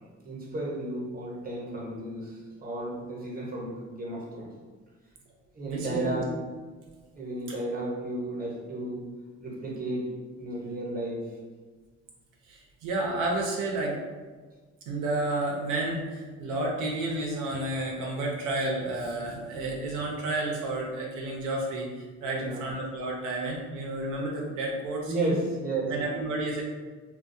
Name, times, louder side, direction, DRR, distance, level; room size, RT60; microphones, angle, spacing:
voice 1, 0.0-4.5 5.5-6.3 7.1-9.1 9.4-10.1 10.4-11.3 22.3-22.7 25.1-25.9, right 1 dB, 30° right, -3 dB, 0.8 m, -33 dB
voice 2, 5.6-6.2 12.5-14.0 14.9-21.9 22.2-25.3 25.9-26.6, right 2 dB, 90° right, -1 dB, 0.7 m, -31 dB
2.3 x 2.2 x 2.6 m, 1.4 s
cardioid pair, 90°, 30 cm